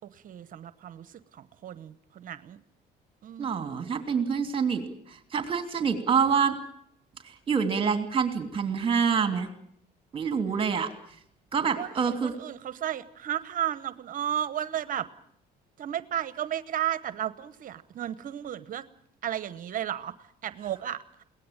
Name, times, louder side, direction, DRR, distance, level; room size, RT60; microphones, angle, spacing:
voice 1, 0.0-2.6 3.2-3.8 11.8-15.1 15.8-18.8 19.2-21.2, right 11 dB, 55° right, 15 dB, 1.0 m, -34 dB
voice 2, 3.4-4.8 5.1-6.5 7.2-9.5 10.1-10.9 11.5-12.3, right 6 dB, 30° right, 8 dB, 3.0 m, -26 dB
22.0 x 18.0 x 8.9 m, 0.70 s
cardioid pair, 110°, 17 cm